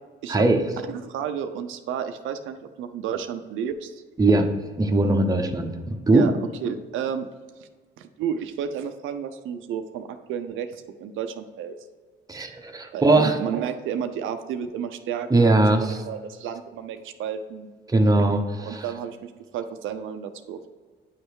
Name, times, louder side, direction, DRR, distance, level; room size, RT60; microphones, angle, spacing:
voice 1, 0.3-0.6 4.2-4.5 4.8-6.3 12.3-13.4 15.3-16.0 17.9-18.8, right 2 dB, 20° right, 4 dB, 0.8 m, -20 dB
voice 2, 0.9-4.0 6.1-6.3 6.6-7.3 8.0-11.7 12.9-15.6 15.9-17.7 18.6-20.7, right 8 dB, 85° right, 7 dB, 0.5 m, -32 dB
9.2 x 3.3 x 4.6 m, 1.4 s
cardioid pair, 90°, 20 cm